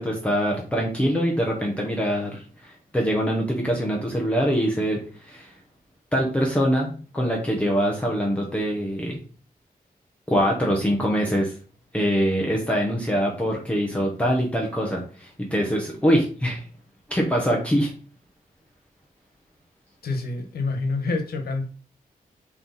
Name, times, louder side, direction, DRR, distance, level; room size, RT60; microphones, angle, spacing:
voice 1, 0.0-5.5 6.1-9.2 10.3-11.5 11.9-16.6 17.1-17.9, equal, 10° left, -2 dB, 1.0 m, -24 dB
voice 2, 20.0-21.7, left 3 dB, 80° left, 4 dB, 1.3 m, -27 dB
7.4 x 3.2 x 4.2 m, 0.39 s
wide cardioid pair, 175°, 16 cm